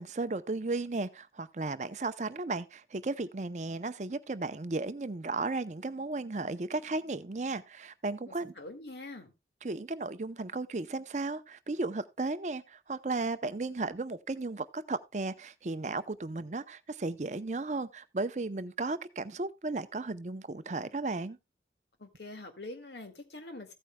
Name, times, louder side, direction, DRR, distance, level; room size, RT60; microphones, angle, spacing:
voice 1, 0.0-8.5 9.6-21.4, right 3 dB, 40° right, 0.6 m, -35 dB
voice 2, 8.3-9.3 22.0-23.7, left 2 dB, 75° left, 2.0 m, -45 dB
15.5 x 8.8 x 2.2 m
head